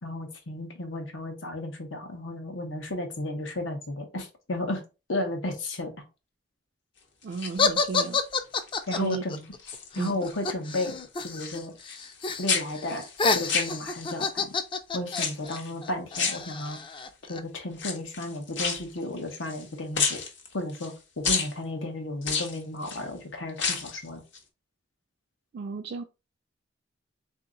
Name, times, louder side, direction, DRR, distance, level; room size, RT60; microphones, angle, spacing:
voice 1, 0.0-4.8 5.1-5.9 8.9-9.4 9.9-11.0 11.2-11.7 12.4-13.1 13.3-14.5 14.9-16.8 17.3-20.2 20.5-24.2, left 1 dB, 90° left, 1.1 m, -33 dB
sound 1, 7.2-8.2 8.7-9.1 9.4-10.4 10.6-12.2 12.4-14.2 15.1-15.7 16.1-17.0 17.7-19.7 19.9-20.9 21.2-21.5 22.2-23.0 23.5-24.0 24.3-24.4, left 5 dB, 70° left, 1.1 m, -31 dB
voice 2, 7.2-8.2 8.9-9.2 10.0-10.2 25.5-26.0, right 4 dB, 60° right, 0.4 m, -33 dB
sound 2, 7.6-11.6 11.8-12.5 12.8-17.4, left 4 dB, 25° left, 0.4 m, -29 dB
3.8 x 2.8 x 3.8 m
head